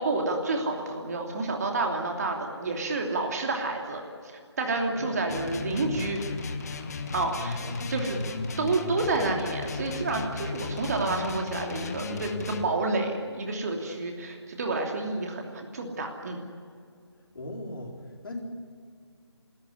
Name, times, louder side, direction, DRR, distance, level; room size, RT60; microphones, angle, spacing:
voice 1, 0.0-4.0 4.6-6.2 7.1-7.6 7.9-8.2 8.6-16.4, right 3 dB, 35° right, 2 dB, 3.0 m, -29 dB
voice 2, 5.0-6.2 7.6-8.3 17.3-17.9 18.2-18.4, left 1 dB, 55° left, 1 dB, 4.2 m, -39 dB
sound 1, 5.3-12.7, left 4 dB, 35° left, 1.4 m, -35 dB
28.0 x 13.5 x 9.7 m, 2.2 s
figure-of-eight pair, 160°, 14 cm